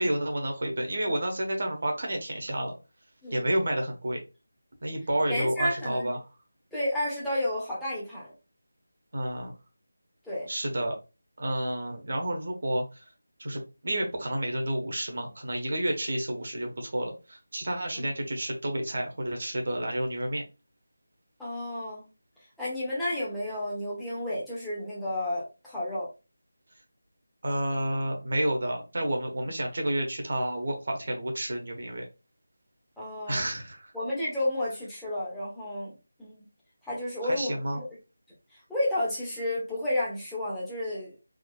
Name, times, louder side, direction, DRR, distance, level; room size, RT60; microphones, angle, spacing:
voice 1, 0.0-2.7 3.3-4.2 4.8-6.3 9.1-9.5 10.5-10.9 11.4-13.0 13.4-20.4 27.4-32.1 33.3-33.9 37.2-37.8, right 1 dB, 50° right, 3 dB, 1.0 m, -30 dB
voice 2, 5.3-6.1 6.7-8.3 10.2-10.5 17.9-18.0 21.4-22.0 22.6-26.1 33.0-33.4 33.9-35.9 36.2-36.4 36.8-37.8 38.7-41.2, left 1 dB, ahead, -10 dB, 1.0 m, -31 dB
3.6 x 2.7 x 2.2 m, 0.29 s
figure-of-eight pair, 160°, 0 cm